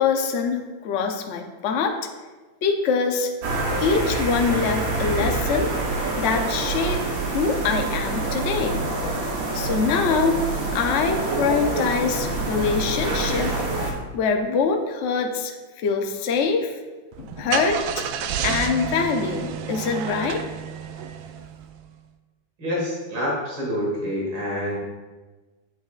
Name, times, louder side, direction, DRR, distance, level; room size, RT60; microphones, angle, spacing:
voice 1, 0.0-1.9 2.6-3.3 3.8-7.0 7.3-8.8 9.5-10.4 10.7-13.5 13.9-16.7 17.2-17.8 18.4-20.4, left 5 dB, 80° left, 4 dB, 0.6 m, -24 dB
sound 1, 3.4-13.9, right 2 dB, 50° right, 1.4 m, -26 dB
Car / Engine starting, 17.1-21.8, right 8 dB, 85° right, 1.4 m, -30 dB
voice 2, 22.6-24.8, equal, 65° right, -4 dB, 2.6 m, -27 dB
8.6 x 8.3 x 2.4 m, 1.3 s
omnidirectional pair, 2.1 m